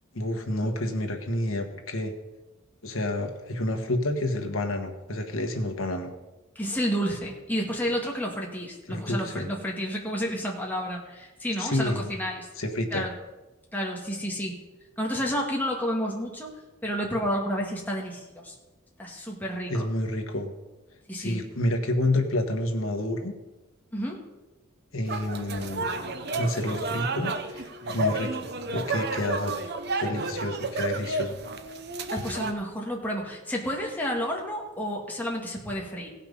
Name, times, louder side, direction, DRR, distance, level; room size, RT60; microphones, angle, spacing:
voice 1, 0.1-2.1 2.8-6.1 8.9-9.5 11.6-12.1 12.6-13.1 19.7-20.5 21.1-23.3 24.9-25.9 26.4-29.5 30.0-31.4, left 1 dB, 80° left, 4 dB, 1.4 m, -29 dB
voice 2, 6.6-12.5 12.9-13.1 13.7-14.6 15.0-16.5 16.8-18.5 19.0-19.9 21.1-21.4 23.9-24.3 32.1-36.1, equal, 10° left, -1 dB, 1.8 m, -30 dB
sound 1, 25.1-32.5, right 2 dB, 55° right, 0.8 m, -31 dB
16.5 x 5.9 x 5.4 m, 1.1 s
head